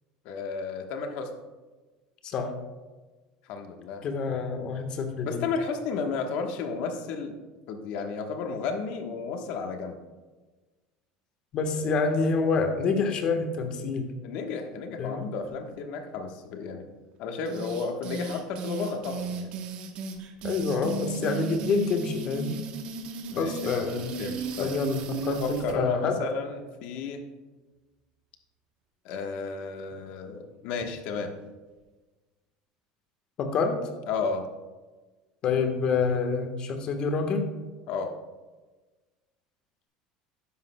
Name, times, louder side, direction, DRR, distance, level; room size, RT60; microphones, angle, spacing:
voice 1, 0.2-1.3 3.5-4.0 5.2-7.4 7.7-10.0 11.7-11.8 14.2-16.9 17.2-19.5 23.3-23.9 24.2-24.7 25.4-27.2 29.0-31.3 34.1-34.5 37.9-38.1, left 4 dB, 60° left, 5 dB, 1.2 m, -33 dB
voice 2, 2.2-2.5 4.0-5.4 11.5-14.1 15.0-15.2 20.4-22.6 23.4-24.1 24.6-25.4 25.7-26.1 33.4-33.8 35.4-37.4, left 4 dB, 40° left, 5 dB, 1.2 m, -27 dB
sound 1, 17.4-25.8, right 5 dB, 50° right, 1.0 m, -35 dB
12.0 x 9.7 x 2.2 m, 1.3 s
cardioid pair, 145°, 2 cm